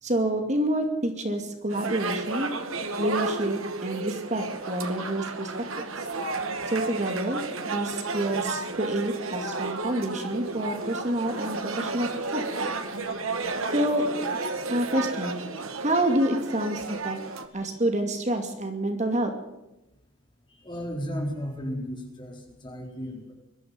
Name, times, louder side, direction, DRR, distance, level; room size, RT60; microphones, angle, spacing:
voice 1, 0.0-2.5 3.0-6.1 6.7-12.4 13.7-14.1 14.7-15.4 15.8-17.2 17.5-19.3, right 1 dB, 35° right, 5 dB, 2.5 m, -28 dB
sound 1, 1.7-17.4, right 3 dB, 80° right, 2.2 m, -32 dB
voice 2, 20.5-23.3, equal, 20° left, 1 dB, 4.5 m, -34 dB
22.5 x 13.5 x 9.7 m, 0.93 s
head